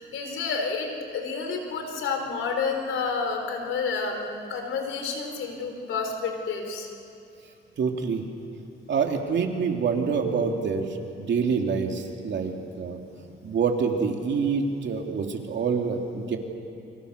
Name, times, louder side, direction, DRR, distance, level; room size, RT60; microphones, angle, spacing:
voice 1, 0.0-6.9, left 4 dB, 90° left, 4 dB, 4.0 m, -30 dB
voice 2, 7.8-8.2 8.9-13.0 13.4-16.4, right 5 dB, 65° right, 2 dB, 2.9 m, -26 dB
29.0 x 25.0 x 6.8 m, 2.6 s
cardioid pair, 105°, 20 cm